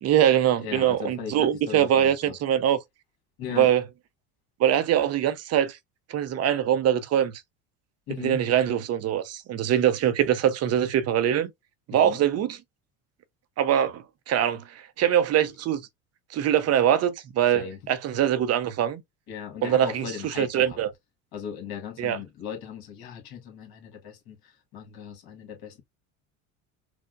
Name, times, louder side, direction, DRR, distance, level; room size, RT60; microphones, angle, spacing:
voice 1, 0.0-2.8 3.6-3.8 4.6-5.8 6.1-7.3 8.2-11.5 11.9-12.6 13.6-15.9 16.3-19.0 19.6-20.9 22.0-22.2, right 10 dB, 40° right, 0.5 m, -23 dB
voice 2, 0.6-2.4 3.4-3.7 8.1-8.4 11.9-12.2 17.5-17.8 19.3-20.8 21.3-25.8, left 7 dB, 60° left, 1.7 m, -38 dB
4.4 x 2.1 x 2.4 m
supercardioid pair, 90°, 42 cm